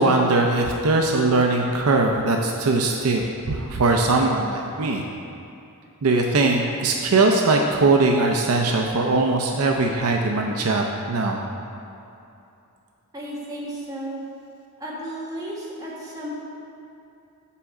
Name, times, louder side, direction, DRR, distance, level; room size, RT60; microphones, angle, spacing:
voice 1, 0.0-5.1 6.0-11.4, right 3 dB, 70° right, 2 dB, 0.5 m, -20 dB
voice 2, 13.1-14.2 14.8-16.3, right 1 dB, 15° right, -6 dB, 1.4 m, -33 dB
5.7 x 4.8 x 6.3 m, 2.7 s
head